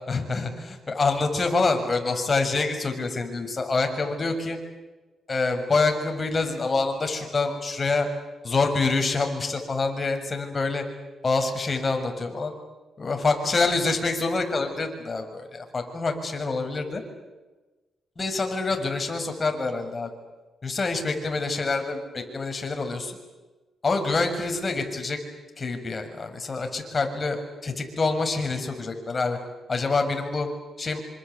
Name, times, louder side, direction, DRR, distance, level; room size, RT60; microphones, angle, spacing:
voice 1, 0.1-4.6 5.3-8.1 8.4-10.8 11.2-12.5 13.0-17.0 18.2-20.1 20.6-23.2 23.8-25.2 25.6-29.4 29.7-30.5 30.8-31.0, left 3 dB, 30° left, 5 dB, 6.6 m, -26 dB
27.0 x 26.5 x 8.4 m, 1.2 s
cardioid pair, 95°, 0 cm